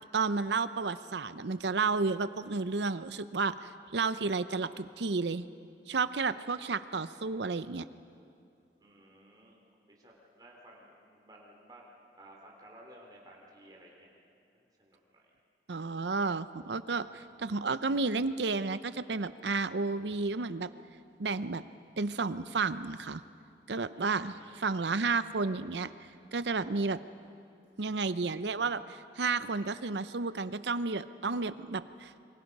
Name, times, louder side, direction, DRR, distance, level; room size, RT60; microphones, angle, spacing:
voice 1, 0.1-5.5 5.9-7.8 15.7-20.7 21.2-21.6 22.0-23.2 23.7-25.9 26.3-27.0 27.8-32.2, right 4 dB, 80° right, 14 dB, 0.7 m, -32 dB
voice 2, 6.3-6.8 8.8-9.6 9.9-11.9 12.2-14.1 14.8-15.3 23.9-24.8, right 1 dB, 20° right, -2 dB, 3.5 m, -56 dB
28.0 x 24.5 x 5.4 m, 2.4 s
head